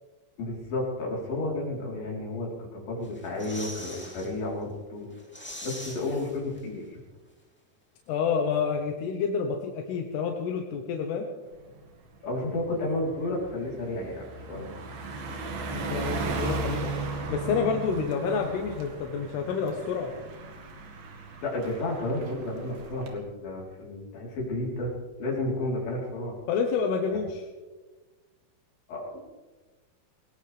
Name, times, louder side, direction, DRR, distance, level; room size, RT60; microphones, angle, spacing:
voice 1, 0.4-5.1 5.6-7.0 12.2-14.7 21.4-24.9 25.2-26.4 28.9-29.2, left 2 dB, 65° left, -4 dB, 5.8 m, -32 dB
sound 1, 3.0-4.3 4.7-4.8 5.1-6.9 7.1-7.2, left 1 dB, 5° left, 2.2 m, -42 dB
voice 2, 8.1-11.3 15.7-16.8 17.3-20.1 26.5-27.5, left 6 dB, 90° left, 2 dB, 3.2 m, -28 dB
Car passing by, 11.5-11.8 12.2-23.1, right 3 dB, 70° right, 3.7 m, -36 dB
20.5 x 20.5 x 3.5 m, 1.3 s
omnidirectional pair, 4.6 m